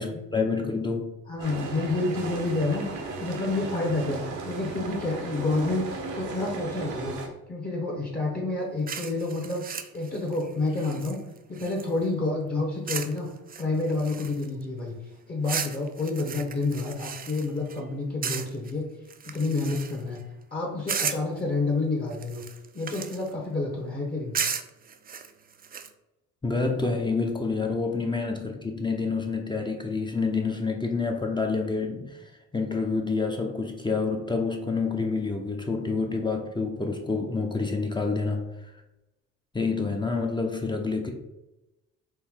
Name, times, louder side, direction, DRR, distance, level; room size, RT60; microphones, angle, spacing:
voice 1, 0.0-1.1 26.4-38.7 39.5-41.1, left 4 dB, 15° left, 2 dB, 0.6 m, -28 dB
voice 2, 1.3-7.2 7.5-9.6 9.9-11.2 11.5-13.3 13.6-14.9 15.3-18.9 19.2-20.2 20.5-22.4 22.7-24.4, left 2 dB, 30° left, -1 dB, 1.1 m, -29 dB
sound 1, 1.4-7.3, right 3 dB, 80° right, 0.9 m, -36 dB
sound 2, 8.9-12.1 12.9-13.2 13.5-14.6 15.4-17.8 18.2-18.7 19.1-20.2 20.9-21.4 22.1-23.3 24.3-25.9, right 7 dB, 30° right, 0.4 m, -35 dB
4.5 x 2.7 x 3.6 m, 0.95 s
cardioid pair, 90°, 30 cm